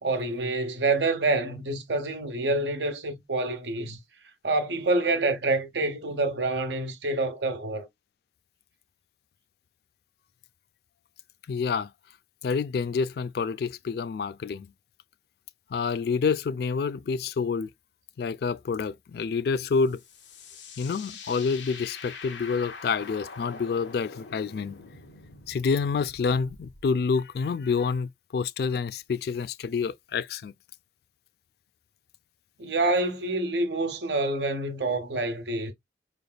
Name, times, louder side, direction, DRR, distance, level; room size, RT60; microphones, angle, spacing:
voice 1, 0.0-4.0 4.4-7.9 32.6-35.7, right 2 dB, 75° right, 1.0 m, -27 dB
voice 2, 11.5-11.9 12.4-14.7 15.7-17.7 18.2-20.0 20.8-24.8 25.5-30.5, left 5 dB, 60° left, 0.3 m, -28 dB
sound 1, 19.7-26.8, left 5 dB, 90° left, 1.1 m, -44 dB
4.9 x 3.4 x 2.2 m
head